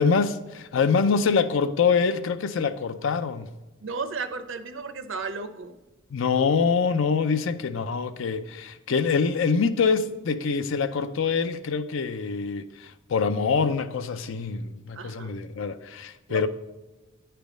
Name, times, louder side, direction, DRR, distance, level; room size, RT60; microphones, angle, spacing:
voice 1, 0.0-3.5 6.1-16.5, left 5 dB, 65° left, 0.5 m, -25 dB
voice 2, 3.8-5.8 14.9-15.3 16.3-16.5, right 4 dB, 65° right, 0.6 m, -34 dB
9.3 x 3.4 x 5.1 m
head